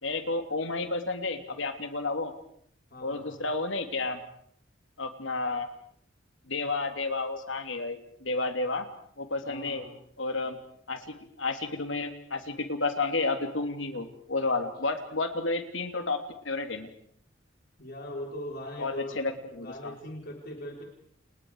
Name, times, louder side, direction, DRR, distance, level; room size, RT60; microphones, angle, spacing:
voice 1, 0.0-2.3 3.0-4.2 5.0-5.7 6.5-8.8 9.2-9.9 10.2-10.6 10.9-16.9 18.8-19.9, left 3 dB, 75° left, 6 dB, 3.0 m, -31 dB
voice 2, 2.9-3.4 9.4-9.9 17.8-19.3 19.6-20.8, left 1 dB, 50° left, 1 dB, 3.9 m, -40 dB
30.0 x 29.5 x 4.9 m, 0.64 s
head